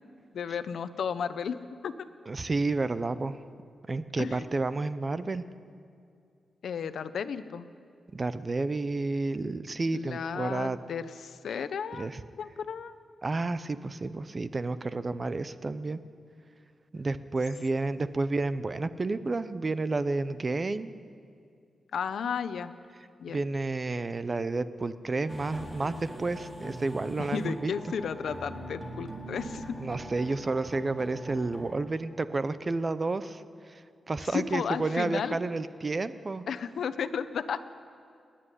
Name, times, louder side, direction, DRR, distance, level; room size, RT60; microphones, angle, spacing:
voice 1, 0.3-1.9 4.2-4.5 6.6-7.7 9.9-12.1 12.4-12.9 21.9-22.7 23.2-23.4 27.2-29.8 34.3-35.4 36.5-37.6, left 7 dB, 75° left, 12 dB, 0.8 m, -33 dB
voice 2, 2.3-3.3 3.9-5.4 8.1-10.8 12.0-12.2 13.2-16.0 16.9-20.9 23.3-27.7 29.8-33.4 33.7-33.8 34.1-36.4, right 3 dB, 30° right, 13 dB, 0.7 m, -30 dB
sound 1, 25.3-31.8, right 1 dB, 5° right, 3.2 m, -42 dB
30.0 x 10.5 x 9.9 m, 2.4 s
wide cardioid pair, 140°, 0 cm